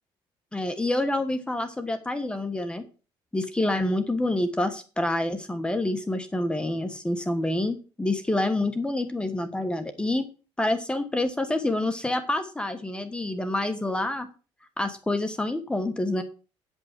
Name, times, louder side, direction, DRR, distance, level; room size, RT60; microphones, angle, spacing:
voice 1, 0.5-2.8 3.3-10.2 10.6-14.3 14.8-16.2, left 1 dB, 10° left, 8 dB, 1.2 m, -27 dB
9.5 x 5.4 x 7.4 m, 0.35 s
cardioid pair, 125°, 10 cm